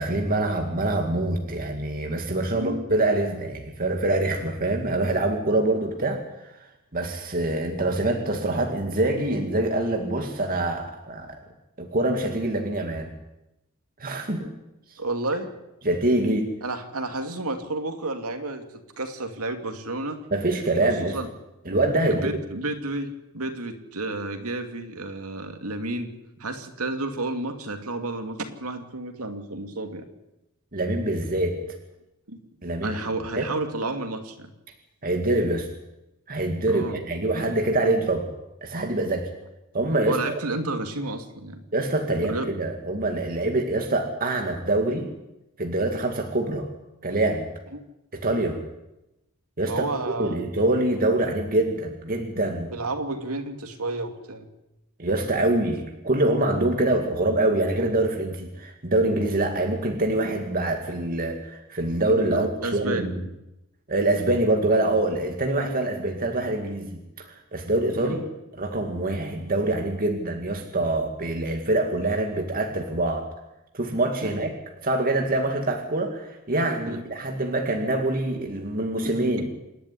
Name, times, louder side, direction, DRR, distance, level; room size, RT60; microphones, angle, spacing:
voice 1, 0.0-6.2 6.9-11.4 11.8-13.1 14.0-14.5 15.8-16.5 20.3-21.2 21.7-22.3 30.7-31.6 32.6-33.0 33.4-33.5 35.0-35.7 36.3-38.3 38.6-39.3 39.7-40.4 41.7-45.1 45.6-46.7 47.0-47.5 48.1-48.6 49.6-52.7 55.0-63.2 63.9-68.2 68.6-73.3 73.7-74.5 74.8-79.4, right 2 dB, 40° right, 3 dB, 2.4 m, -25 dB
voice 2, 2.5-2.8 15.0-15.5 16.6-18.6 19.0-20.2 21.0-21.3 22.1-26.1 26.4-30.1 32.3-32.4 32.8-34.5 36.7-37.0 40.1-41.6 42.2-42.5 47.7-47.8 49.7-50.4 52.7-54.5 62.3-63.1 68.0-68.2 74.2-74.3 76.8-77.0 79.4-79.5, right 2 dB, 75° right, 6 dB, 2.8 m, -31 dB
27.5 x 11.5 x 9.9 m, 0.93 s
head